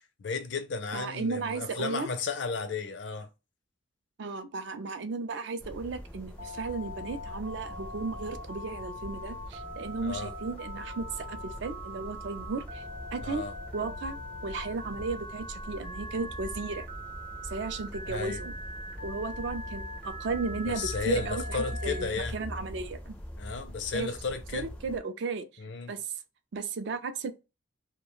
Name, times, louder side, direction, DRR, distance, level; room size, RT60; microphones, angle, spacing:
voice 1, 0.0-3.3 10.0-10.3 13.2-13.5 18.0-18.4 20.5-22.4 23.4-24.7 25.6-26.0, left 4 dB, 65° left, 0.5 m, -34 dB
voice 2, 0.9-2.1 4.2-12.8 13.1-13.4 13.7-16.9 17.4-18.5 19.0-23.2 23.9-24.1 24.5-25.5 25.9-26.1 26.5-27.3, right 4 dB, 65° right, 0.4 m, -35 dB
sound 1, 5.6-25.0, equal, 5° left, 0.4 m, -42 dB
Telephone, 6.4-22.1, equal, 45° right, 0.8 m, -42 dB
2.3 x 2.1 x 3.0 m
head